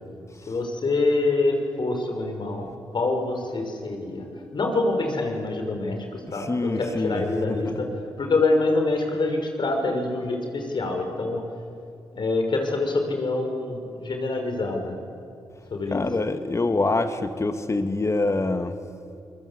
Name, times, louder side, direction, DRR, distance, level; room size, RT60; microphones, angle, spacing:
voice 1, 0.5-4.3 4.5-7.9 8.2-11.4 12.1-14.9 15.7-16.1, left 2 dB, 55° left, 3 dB, 5.8 m, -25 dB
voice 2, 6.3-7.6 15.9-18.8, left 2 dB, 30° left, 9 dB, 1.8 m, -25 dB
27.5 x 22.0 x 8.5 m, 2.5 s
supercardioid pair, 50°, 9 cm